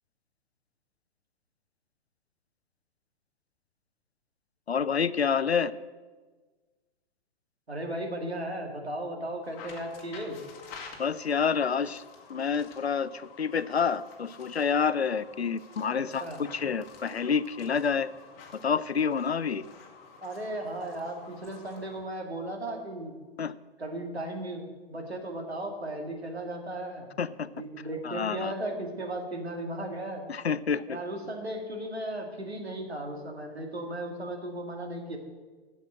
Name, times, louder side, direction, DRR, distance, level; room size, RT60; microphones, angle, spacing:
voice 1, 4.7-5.7 11.0-12.0 12.3-16.2 16.5-18.1 18.6-19.6 23.4-23.5 27.2-27.5 28.0-28.5 30.3-31.0, left 6 dB, 85° left, 17 dB, 0.5 m, -28 dB
voice 2, 7.7-10.4 16.2-16.4 20.2-23.1 23.8-27.1 27.5-30.3 30.9-35.2, right 1 dB, 80° right, 2 dB, 2.1 m, -36 dB
sound 1, 9.4-22.1, left 5 dB, 30° left, 1.6 m, -50 dB
8.0 x 7.2 x 8.6 m, 1.4 s
figure-of-eight pair, 115°, 31 cm